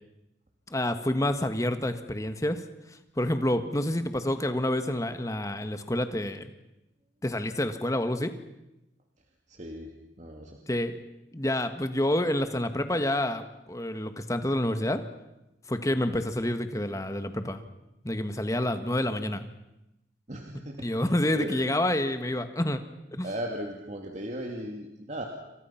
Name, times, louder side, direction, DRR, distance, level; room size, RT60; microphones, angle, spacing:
voice 1, 0.7-2.6 3.2-6.5 7.2-8.3 10.7-11.0 11.3-15.0 15.7-17.6 18.0-19.5 20.8-22.8 23.1-23.3, left 1 dB, 20° left, 9 dB, 1.6 m, -28 dB
voice 2, 9.5-9.9 10.2-10.6 20.3-20.9 21.3-21.6 23.2-25.3, right 1 dB, 40° right, 2 dB, 2.4 m, -37 dB
28.5 x 26.0 x 5.9 m, 0.94 s
head